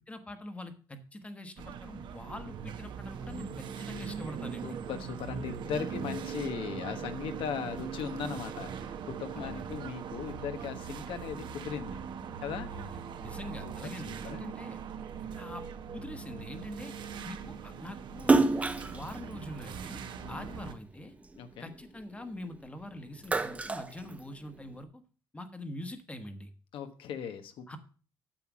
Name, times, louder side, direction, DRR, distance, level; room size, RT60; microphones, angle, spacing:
voice 1, 0.1-4.8 9.3-9.7 12.7-14.8 15.4-15.6 15.9-16.9 17.2-18.3 18.9-20.0 20.3-21.1 21.6-25.0 25.3-26.5 27.7-27.8, left 1 dB, 15° left, 8 dB, 1.1 m, -44 dB
sound 1, 1.6-20.7, right 7 dB, 65° right, 1.0 m, -41 dB
voice 2, 4.6-12.0 12.4-12.7 13.6-13.7 14.1-14.5 20.2-20.5 21.4-21.7 26.7-27.8, left 7 dB, 85° left, 8 dB, 1.2 m, -38 dB
Splash splatter, 18.2-20.7 21.2-22.7 23.0-24.7, right 3 dB, 15° right, 0.6 m, -29 dB
9.0 x 7.4 x 6.1 m, 0.39 s
cardioid pair, 150°, 9 cm